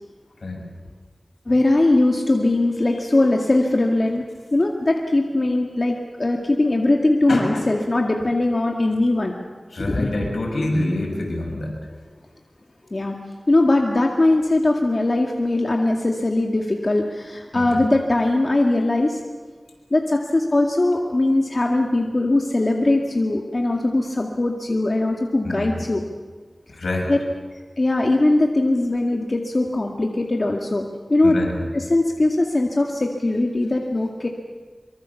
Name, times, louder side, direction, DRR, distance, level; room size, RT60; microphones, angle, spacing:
voice 1, 1.5-4.2 4.5-9.3 9.8-10.1 12.9-13.2 13.5-19.2 19.9-26.0 27.1-27.2 27.8-30.8 31.1-31.4 31.7-34.3, left 2 dB, 45° left, 1 dB, 2.1 m, -20 dB
voice 2, 7.3-7.7 9.7-11.7 17.5-17.8 25.4-25.7 26.7-27.1 31.2-31.6, left 1 dB, 85° left, 0 dB, 6.6 m, -26 dB
24.5 x 24.5 x 7.2 m, 1.4 s
wide cardioid pair, 65°, 0 cm